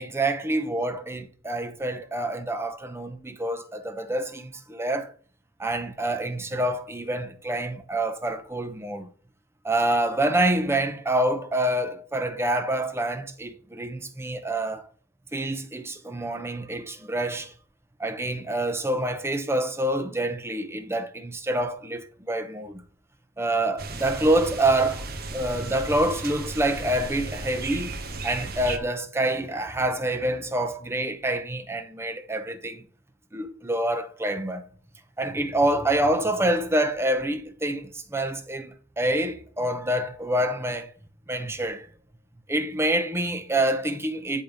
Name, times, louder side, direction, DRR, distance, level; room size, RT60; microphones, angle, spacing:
voice 1, 0.0-5.1 5.6-9.1 9.6-14.8 15.3-17.5 18.0-22.8 23.4-25.1 25.3-32.8 33.3-34.6 35.2-40.9 41.3-41.9 42.5-44.4, right 1 dB, 15° right, 0.8 m, -27 dB
sound 1, 23.8-28.8, right 3 dB, 50° right, 1.1 m, -35 dB
10.5 x 3.6 x 5.2 m
head